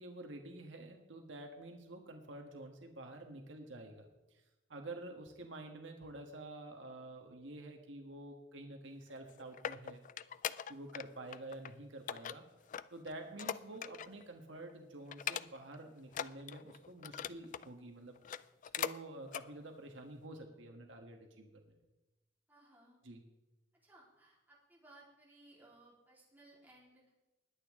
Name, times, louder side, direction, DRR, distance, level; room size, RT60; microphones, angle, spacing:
voice 1, 0.0-4.1 4.3-4.4 4.7-10.0 10.7-12.4 12.9-18.2 18.7-21.8 23.0-23.2, right 2 dB, 80° right, 3 dB, 1.5 m, -49 dB
sound 1, 9.1-11.1 11.3-11.7 12.1-14.2 14.6-14.7 15.1-15.8 16.1-17.7 18.2-19.0 19.3-19.5 20.0-20.1, left 9 dB, 45° left, 0.3 m, -41 dB
voice 2, 22.5-23.0 23.8-27.0, right 2 dB, 10° right, -5 dB, 3.9 m, -62 dB
20.5 x 8.3 x 3.7 m, 1.0 s
head